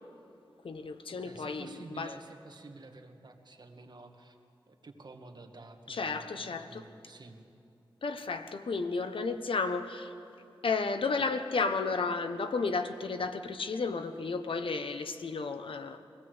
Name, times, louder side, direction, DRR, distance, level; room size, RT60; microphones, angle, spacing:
voice 1, 0.6-2.1 5.9-6.8 8.0-10.1 10.6-16.0, left 4 dB, 90° left, 8 dB, 1.1 m, -33 dB
voice 2, 1.2-4.4 4.7-7.4, right 3 dB, 55° right, 4 dB, 1.9 m, -50 dB
23.5 x 17.0 x 8.0 m, 2.6 s
wide cardioid pair, 90°, 9 cm